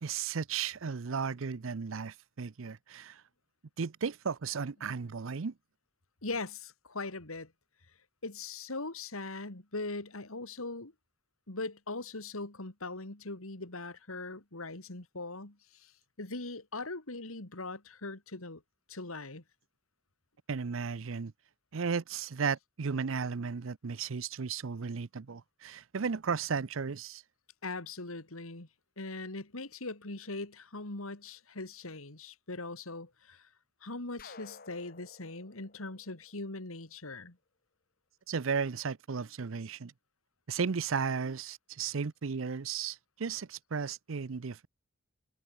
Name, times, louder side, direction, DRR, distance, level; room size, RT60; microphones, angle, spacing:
voice 1, 0.0-3.2 3.8-5.5 20.5-21.3 21.7-27.2 38.3-39.9 40.5-44.7, right 5 dB, 65° right, 0.6 m, -34 dB
voice 2, 6.2-7.5 8.2-10.9 11.5-15.9 16.2-18.6 18.9-19.4 27.6-28.7 29.0-33.5 33.8-37.4, left 3 dB, 85° left, 2.9 m, -40 dB
sound 1, 34.2-37.0, left 4 dB, 45° left, 3.3 m, -54 dB
head